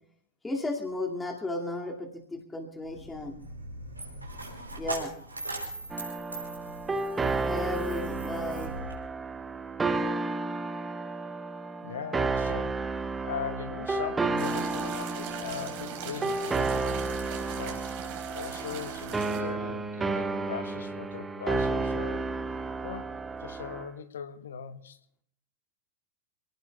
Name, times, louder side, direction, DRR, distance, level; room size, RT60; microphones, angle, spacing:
voice 1, 0.4-3.4 4.8-5.1 7.5-8.8, left 2 dB, 10° left, 2.3 m, -34 dB
Coin (dropping), 2.8-8.9, right 2 dB, 85° right, 4.8 m, -40 dB
sound 1, 5.9-23.9, right 3 dB, 15° right, 1.1 m, -32 dB
voice 2, 11.8-12.8 13.2-17.0 17.5-18.0 18.3-22.3 22.8-25.0, left 7 dB, 65° left, 1.1 m, -40 dB
sound 2, 14.4-19.4, right 8 dB, 50° right, 3.9 m, -40 dB
28.0 x 18.5 x 2.3 m
figure-of-eight pair, 90°, 0 cm